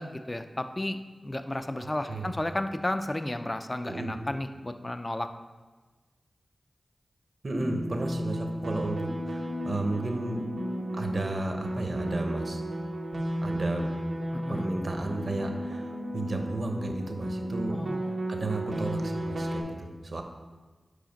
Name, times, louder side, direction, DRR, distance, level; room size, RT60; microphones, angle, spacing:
voice 1, 0.0-5.3 14.3-14.7 17.7-18.3 18.7-18.8, left 1 dB, 25° left, 8 dB, 0.3 m, -33 dB
voice 2, 1.8-2.3 3.8-4.2 7.4-10.5 10.9-12.6 13.4-13.9 14.5-17.8 18.3-20.2, right 2 dB, 55° right, 4 dB, 0.8 m, -33 dB
sound 1, 7.6-19.6, right 1 dB, 85° right, 0.9 m, -34 dB
5.0 x 4.9 x 5.2 m, 1.3 s
wide cardioid pair, 60°, 0 cm